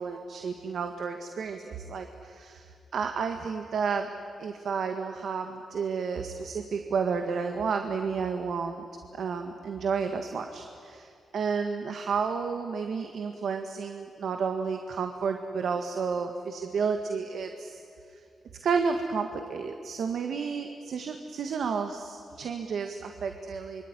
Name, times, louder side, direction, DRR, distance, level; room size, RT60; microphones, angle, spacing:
voice 1, 0.0-4.1 4.4-8.9 9.1-17.8 18.1-18.2 18.6-23.8, right 5 dB, 75° right, 5 dB, 1.6 m, -31 dB
25.5 x 23.0 x 9.8 m, 2.4 s
cardioid pair, 85°, 0 cm